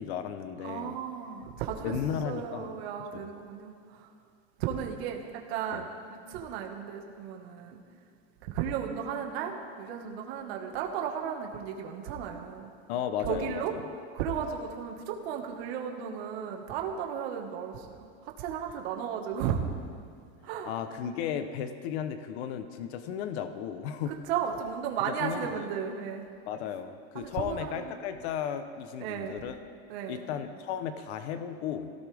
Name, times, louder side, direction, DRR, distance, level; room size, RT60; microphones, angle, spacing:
voice 1, 0.0-0.9 1.8-2.8 3.1-3.3 5.7-5.8 12.9-13.8 20.7-24.2 25.1-25.7 26.5-29.6 30.1-31.9, left 8 dB, 70° left, 9 dB, 1.1 m, -35 dB
voice 2, 0.6-2.0 2.2-4.1 4.6-7.8 8.4-12.7 13.2-13.8 14.1-18.1 18.4-19.7 20.4-20.7 24.3-26.3 27.1-27.9 29.0-29.4 29.9-30.3, right 8 dB, 65° right, 2 dB, 1.9 m, -34 dB
22.0 x 17.0 x 3.6 m, 2.3 s
supercardioid pair, 170°, 34 cm